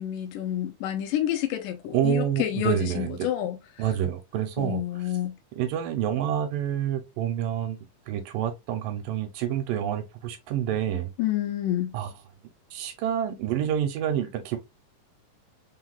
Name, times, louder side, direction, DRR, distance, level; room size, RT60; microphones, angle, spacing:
voice 1, 0.0-3.9 4.6-5.4 11.2-11.9, left 11 dB, 75° left, 2.1 m, -29 dB
voice 2, 1.9-3.3 3.8-4.8 5.6-7.8 8.1-11.1 11.9-12.1 12.7-14.6, right 10 dB, 80° right, 2.2 m, -28 dB
4.8 x 4.0 x 2.2 m
omnidirectional pair, 4.1 m